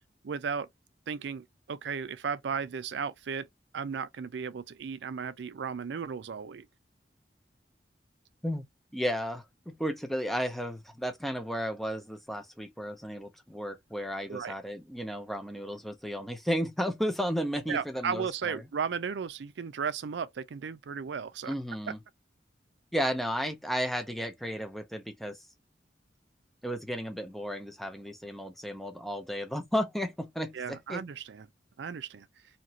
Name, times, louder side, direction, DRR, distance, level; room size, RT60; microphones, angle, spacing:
voice 1, 0.2-0.7 1.1-3.5 3.7-6.7 14.3-14.5 17.7-21.5 21.9-22.0 30.5-31.5 31.8-32.3, right 6 dB, 75° right, 0.4 m, -35 dB
voice 2, 8.9-18.6 21.5-22.0 22.9-25.5 26.6-31.0, equal, ahead, 0.5 m, -33 dB
2.8 x 2.5 x 2.8 m
head